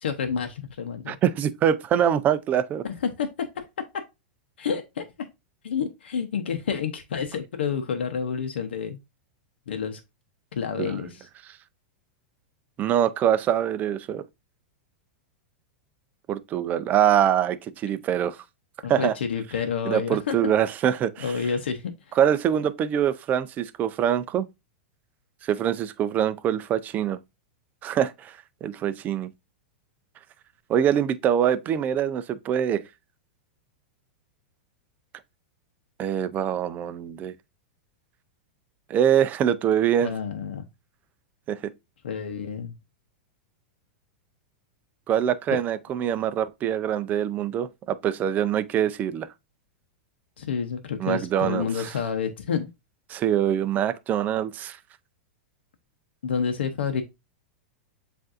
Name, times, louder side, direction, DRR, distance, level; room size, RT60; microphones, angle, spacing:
voice 1, 0.0-1.2 3.0-3.7 4.6-5.0 5.6-9.0 9.7-10.0 10.5-11.3 18.8-20.5 21.2-22.2 40.0-40.6 42.0-42.7 50.4-52.7 56.2-57.0, left 6 dB, 90° left, 0.7 m, -29 dB
voice 2, 1.1-2.8 10.8-10.9 12.8-14.2 16.3-18.4 18.9-19.1 19.9-21.3 22.2-24.5 25.4-27.2 27.8-29.3 30.7-32.8 36.0-37.3 38.9-40.1 41.5-41.6 45.1-49.3 51.0-51.9 53.1-54.8, right 9 dB, 30° right, 0.4 m, -24 dB
7.5 x 2.6 x 2.5 m
hypercardioid pair, 130°, 6 cm